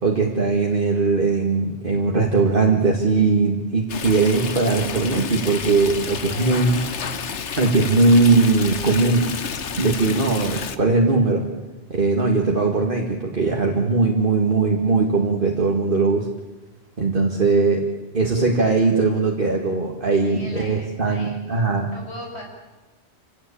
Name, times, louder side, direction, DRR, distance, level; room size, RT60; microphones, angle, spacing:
voice 1, 0.0-6.8 7.6-9.3 9.8-11.4 11.9-16.3 17.0-17.9 18.1-21.9, right 3 dB, 50° right, 0 dB, 2.3 m, -19 dB
Stream, 3.9-10.8, left 6 dB, 85° left, 1.4 m, -31 dB
voice 2, 5.9-7.1 20.2-21.4 21.9-22.4, equal, 70° left, 0 dB, 6.7 m, -39 dB
27.5 x 17.0 x 8.7 m, 1.1 s
omnidirectional pair, 1.1 m